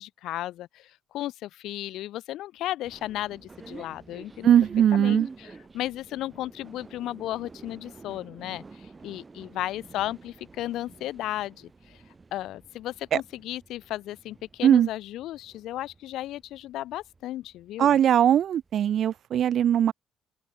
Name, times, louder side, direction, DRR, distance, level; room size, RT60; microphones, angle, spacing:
voice 1, 0.0-4.5 4.9-12.0 12.3-18.0, left 14 dB, 85° left, 0.8 m, -35 dB
sound 1, 2.8-19.1, right 4 dB, 30° right, 6.0 m, -49 dB
voice 2, 4.4-5.3 14.6-14.9 17.8-19.9, right 10 dB, 65° right, 1.0 m, -20 dB
open air
cardioid pair, 90°, 0 cm